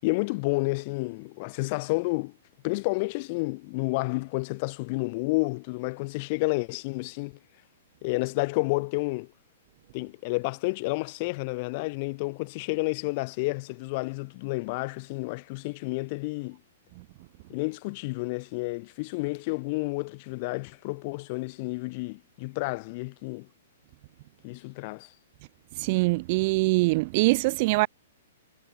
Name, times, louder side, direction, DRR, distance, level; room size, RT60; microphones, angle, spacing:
voice 1, 0.0-2.4 2.6-7.4 8.0-9.3 9.9-16.6 17.5-23.5 24.4-25.1, left 26 dB, 40° left, 6.9 m, -30 dB
voice 2, 25.8-27.9, right 24 dB, 40° right, 0.6 m, -23 dB
hypercardioid pair, 145°, 0 cm